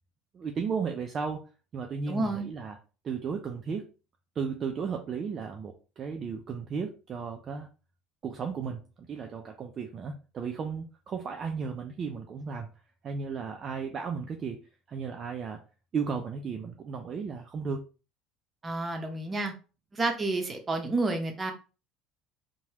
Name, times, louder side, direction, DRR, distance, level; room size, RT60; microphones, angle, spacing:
voice 1, 0.3-1.4 1.7-2.8 3.0-3.9 4.4-7.7 8.2-12.7 13.0-14.6 14.9-15.6 15.9-17.8, right 5 dB, 40° right, 3 dB, 0.4 m, -34 dB
voice 2, 2.1-2.5 18.6-19.5 19.9-21.5, right 2 dB, 25° right, 4 dB, 0.8 m, -30 dB
3.0 x 2.2 x 2.8 m, 0.34 s
supercardioid pair, 90°, 0 cm